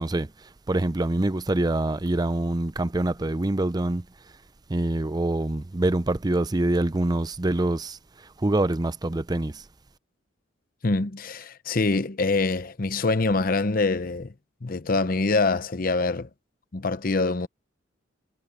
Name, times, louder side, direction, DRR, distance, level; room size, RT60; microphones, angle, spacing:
voice 1, 0.0-4.1 4.7-9.7, right 2 dB, 20° right, 0.5 m, -25 dB
voice 2, 10.8-14.3 14.6-16.3 16.7-17.5, left 3 dB, 45° left, 0.8 m, -25 dB
head